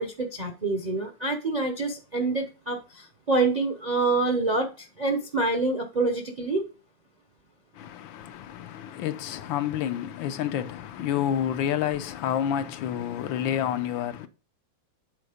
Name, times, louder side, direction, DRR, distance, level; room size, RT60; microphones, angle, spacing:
voice 1, 0.0-6.6, right 3 dB, 45° right, 0.5 m, -26 dB
voice 2, 7.7-14.3, left 10 dB, 80° left, 1.4 m, -29 dB
8.2 x 4.2 x 4.9 m
omnidirectional pair, 2.1 m